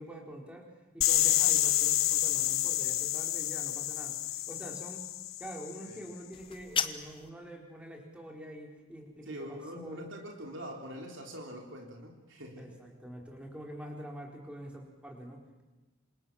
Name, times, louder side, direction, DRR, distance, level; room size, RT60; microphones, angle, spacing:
voice 1, 0.0-4.2 4.5-5.0 5.4-10.0 12.6-15.6, right 1 dB, 5° right, 1 dB, 4.4 m, -45 dB
sound 1, 1.0-5.8, left 14 dB, 70° left, 1.0 m, -29 dB
sound 2, 6.3-7.3, left 7 dB, 25° left, 1.0 m, -34 dB
voice 2, 9.3-12.6, equal, 60° right, 1 dB, 3.6 m, -43 dB
27.5 x 26.5 x 7.4 m, 1.2 s
head